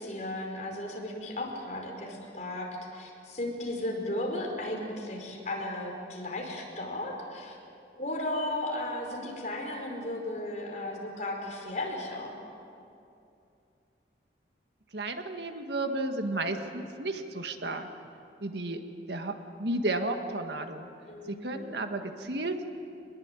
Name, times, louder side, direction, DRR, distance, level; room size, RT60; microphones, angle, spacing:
voice 1, 0.0-7.6 7.9-12.3 21.1-21.8, left 1 dB, 40° left, 0 dB, 5.1 m, -35 dB
voice 2, 14.9-17.9 18.4-18.8 19.1-20.9 21.3-22.6, right 2 dB, 70° right, 6 dB, 1.7 m, -33 dB
24.0 x 21.0 x 9.1 m, 2.6 s
head